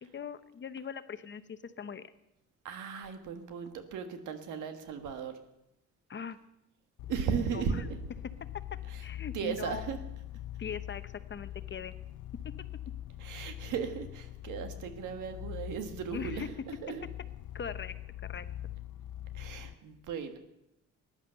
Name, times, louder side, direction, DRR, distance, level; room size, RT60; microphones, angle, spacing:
voice 1, 0.0-2.1 6.1-6.4 7.5-7.8 9.0-9.8 10.6-12.0 12.4-12.5 16.1-16.5 17.5-17.9 18.2-18.5, left 6 dB, 40° left, 12 dB, 0.9 m, -41 dB
voice 2, 2.6-5.4 7.1-8.0 8.9-9.0 9.3-10.0 13.2-16.4 16.8-17.0 19.3-20.4, right 7 dB, 85° right, 8 dB, 1.6 m, -36 dB
sound 1, 7.0-19.7, left 13 dB, 85° left, 0.7 m, -43 dB
14.5 x 11.0 x 6.7 m, 0.88 s
cardioid pair, 90°, 30 cm